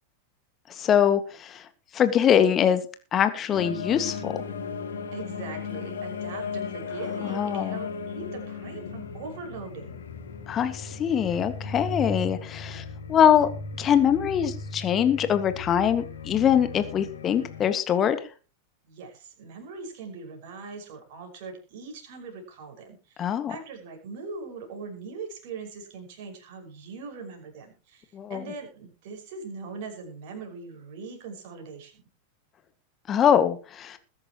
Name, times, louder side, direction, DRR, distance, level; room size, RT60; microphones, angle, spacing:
voice 1, 0.8-1.6 1.9-2.8 3.1-4.4 7.2-7.8 10.5-13.5 13.8-18.2 23.2-23.5 28.1-28.4 33.1-34.0, left 9 dB, 25° left, 10 dB, 1.9 m, -23 dB
sound 1, 3.5-17.7, left 5 dB, 65° left, 2.4 m, -36 dB
voice 2, 5.1-10.1 18.8-32.0, right 4 dB, 50° right, 3 dB, 5.9 m, -41 dB
21.0 x 10.5 x 3.1 m, 0.33 s
figure-of-eight pair, 90°, 0 cm